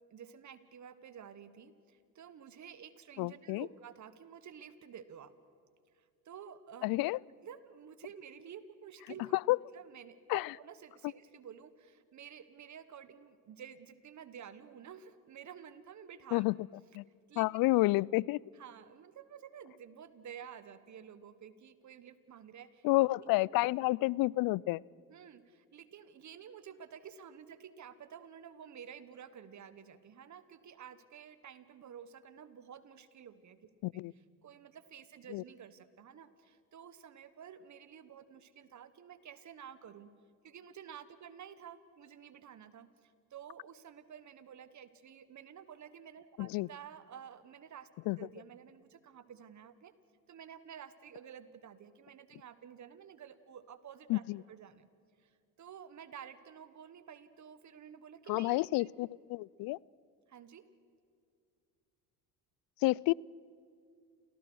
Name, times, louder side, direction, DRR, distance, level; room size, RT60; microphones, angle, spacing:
voice 1, 0.1-5.3 6.0-7.1 7.4-16.6 17.3-17.4 18.5-22.9 23.1-23.3 23.8-23.9 25.1-34.0 34.4-40.1 40.4-47.9 48.2-49.9 50.3-54.9 55.2-58.9 60.3-60.7, right 8 dB, 45° right, 14 dB, 1.4 m, -51 dB
voice 2, 3.2-3.7 6.8-7.2 9.5-9.6 10.3-10.5 16.3-16.6 16.9-17.0 17.4-18.4 22.8-24.8 33.8-34.1 35.3-35.4 46.4-46.7 48.1-48.2 54.1-54.4 58.3-59.8 62.8-63.1, left 21 dB, 55° left, 26 dB, 0.5 m, -30 dB
28.5 x 17.5 x 6.3 m, 2.3 s
supercardioid pair, 85°, 42 cm